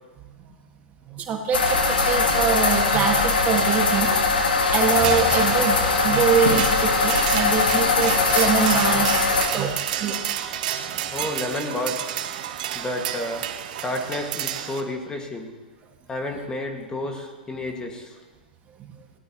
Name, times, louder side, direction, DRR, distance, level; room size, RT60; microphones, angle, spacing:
voice 1, 1.1-4.1 4.7-10.2 10.9-11.0, right 7 dB, 30° right, 2 dB, 2.0 m, -24 dB
sound 1, 1.5-9.5, left 4 dB, 85° left, 2.3 m, -21 dB
sound 2, 4.9-14.8, right 11 dB, 65° right, 1.1 m, -30 dB
voice 2, 11.1-12.2 12.7-13.5 13.8-15.5 16.1-18.1, left 1 dB, 15° left, 3 dB, 2.0 m, -30 dB
19.5 x 17.0 x 3.1 m, 1.2 s
hypercardioid pair, 110°, 5 cm